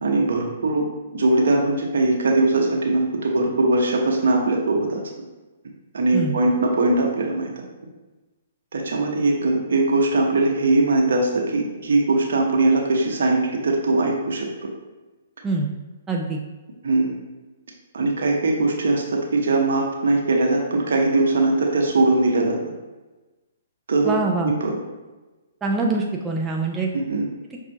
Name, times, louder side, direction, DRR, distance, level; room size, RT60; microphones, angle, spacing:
voice 1, 0.0-0.8 1.1-5.0 5.9-7.5 8.7-14.5 16.8-17.1 17.9-22.6 23.9-24.2 24.4-24.8 27.1-27.3, right 2 dB, 70° right, 0 dB, 0.8 m, -20 dB
voice 2, 16.1-16.4 24.0-24.5 25.6-26.9, right 3 dB, 15° right, 0 dB, 0.4 m, -24 dB
5.4 x 2.4 x 2.7 m, 1.2 s
hypercardioid pair, 130°, 0 cm